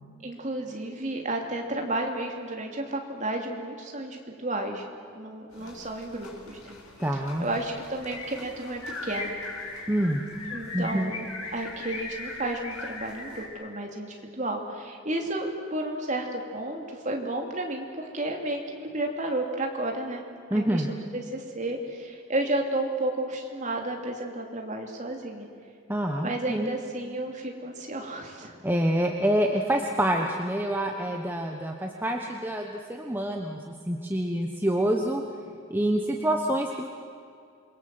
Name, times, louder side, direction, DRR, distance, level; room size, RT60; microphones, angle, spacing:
voice 1, 0.2-4.9 5.1-6.8 7.4-9.4 10.5-20.2 20.5-25.5 26.2-28.6, right 1 dB, 35° right, 1 dB, 3.0 m, -32 dB
sound 1, 5.5-13.5, left 3 dB, 80° left, 7.5 m, -39 dB
voice 2, 7.0-7.5 9.9-10.2 10.7-11.1 20.5-20.9 25.9-26.7 28.6-35.2 35.7-36.9, right 1 dB, 10° right, 2 dB, 1.2 m, -27 dB
27.5 x 22.5 x 7.9 m, 2.5 s
head